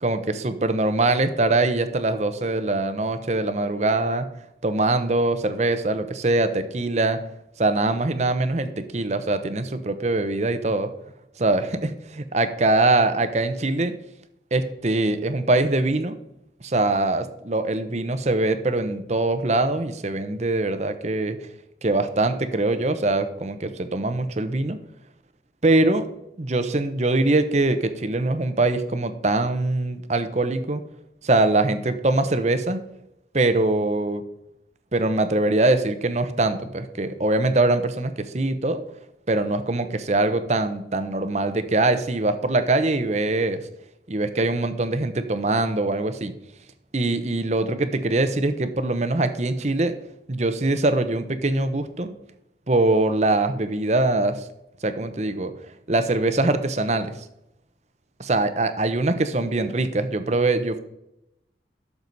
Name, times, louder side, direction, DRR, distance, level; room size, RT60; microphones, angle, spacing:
voice 1, 0.0-4.3 4.6-7.2 7.6-10.9 11.4-13.9 14.5-16.2 16.6-21.4 21.8-24.8 25.6-26.1 26.4-30.8 31.2-32.8 33.3-34.2 34.9-38.8 39.3-43.6 44.1-46.3 46.9-49.9 50.3-52.1 52.7-54.5 54.8-55.5 55.9-57.2 58.2-60.8, right 2 dB, 40° right, 10 dB, 0.9 m, -23 dB
12.0 x 6.9 x 4.1 m, 0.83 s
head